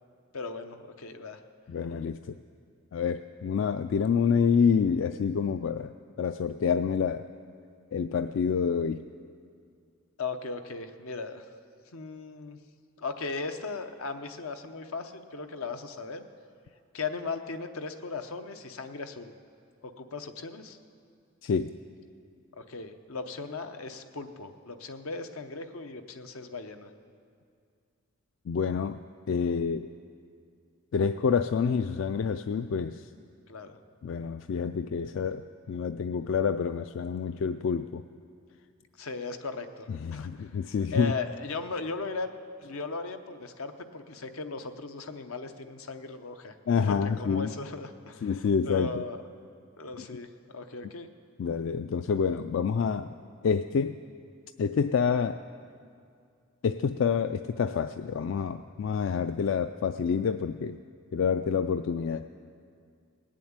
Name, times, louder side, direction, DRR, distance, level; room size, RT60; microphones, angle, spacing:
voice 1, 0.3-1.4 10.2-11.4 11.9-12.6 13.0-16.3 16.9-19.3 19.8-20.8 22.6-26.9 33.5-33.8 39.0-40.5 40.9-42.3 42.6-46.5 46.8-49.2 49.8-51.1, left 4 dB, 85° left, 7 dB, 0.8 m, -37 dB
voice 2, 1.7-2.2 2.9-5.9 6.2-7.2 7.9-9.0 21.4-21.7 28.5-29.0 29.3-29.9 30.9-33.0 34.0-35.4 35.7-38.0 40.0-41.1 46.7-47.5 48.2-48.9 51.4-53.1 53.4-54.0 54.6-55.4 56.6-60.8 61.1-62.3, left 6 dB, 60° left, 10 dB, 0.3 m, -27 dB
18.5 x 7.5 x 8.8 m, 2.3 s
head